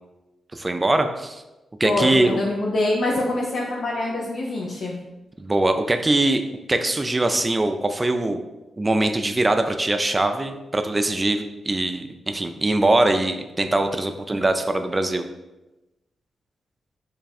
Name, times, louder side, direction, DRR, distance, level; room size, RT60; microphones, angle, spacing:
voice 1, 0.5-1.4 1.8-2.4 5.4-6.4 6.7-8.4 8.8-15.3, right 2 dB, 25° right, 7 dB, 0.3 m, -22 dB
voice 2, 1.8-4.9, left 2 dB, 70° left, -2 dB, 0.5 m, -24 dB
3.2 x 2.3 x 4.1 m, 1.0 s
cardioid pair, 55°, 0 cm